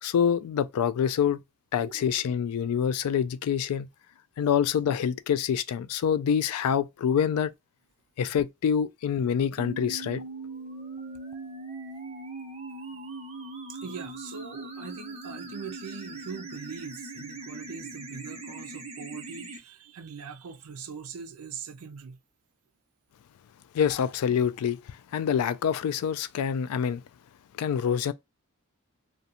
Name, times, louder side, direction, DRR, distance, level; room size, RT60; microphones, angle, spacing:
voice 1, 0.0-1.4 1.7-3.9 4.4-7.5 8.2-10.2 23.7-27.0 27.6-28.1, left 8 dB, 85° left, 0.3 m, -26 dB
sound 1, 9.6-19.6, right 3 dB, 30° right, 0.6 m, -40 dB
voice 2, 13.7-22.2, right 6 dB, 85° right, 0.5 m, -42 dB
2.5 x 2.2 x 2.7 m
head